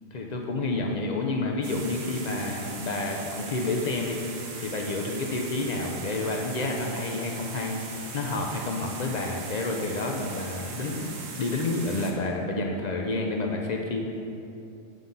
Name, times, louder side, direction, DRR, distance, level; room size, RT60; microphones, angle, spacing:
voice 1, 0.1-4.2 4.6-14.1, left 2 dB, 55° left, 1 dB, 0.4 m, -29 dB
sound 1, 1.6-12.1, right 4 dB, 70° right, 1.2 m, -40 dB
7.9 x 5.5 x 3.9 m, 2.7 s
omnidirectional pair, 1.4 m